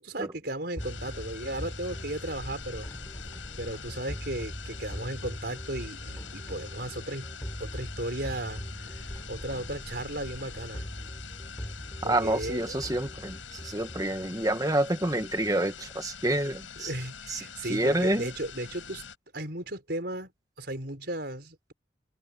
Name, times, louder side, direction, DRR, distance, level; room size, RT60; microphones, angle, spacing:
voice 1, 0.0-2.9 3.6-7.3 7.6-10.9 12.0-12.8 16.8-19.0 19.3-20.3 20.6-21.7, right 1 dB, 55° right, 5.5 m, -35 dB
sound 1, 0.8-19.2, left 6 dB, 85° left, 7.6 m, -45 dB
sound 2, 0.8-14.1, equal, 15° left, 4.3 m, -41 dB
voice 2, 12.0-16.9 17.3-17.4 17.7-18.3, right 1 dB, 20° right, 1.5 m, -28 dB
head